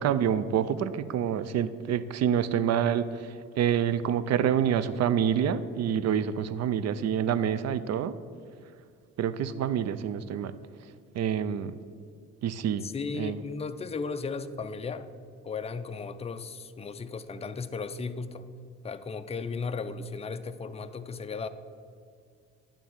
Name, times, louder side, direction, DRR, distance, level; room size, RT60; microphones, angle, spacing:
voice 1, 0.0-8.1 9.2-10.5 11.1-11.7 12.4-12.8 13.2-13.4, right 9 dB, 60° right, 14 dB, 0.5 m, -27 dB
voice 2, 12.8-15.1 15.4-18.5 18.8-21.5, left 4 dB, 20° left, 10 dB, 0.4 m, -35 dB
10.5 x 3.5 x 7.2 m, 2.2 s
cardioid pair, 90°, 30 cm